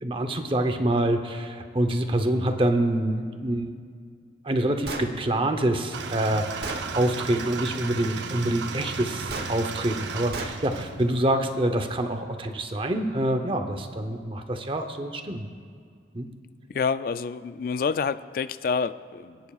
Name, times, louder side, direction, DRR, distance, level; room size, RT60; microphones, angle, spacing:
voice 1, 0.0-3.7 4.4-15.5 16.1-16.3, right 1 dB, 30° right, 6 dB, 0.8 m, -26 dB
Gunshot gunfire, 4.8-5.1 6.0-6.1 6.6-6.9 9.3-9.5 10.3-10.6, right 3 dB, 60° right, 1.1 m, -33 dB
sound 1, 5.9-11.6, right 5 dB, 85° right, 0.6 m, -35 dB
voice 2, 16.7-19.4, left 5 dB, 50° left, 13 dB, 0.3 m, -28 dB
27.5 x 9.4 x 2.4 m, 2.1 s
head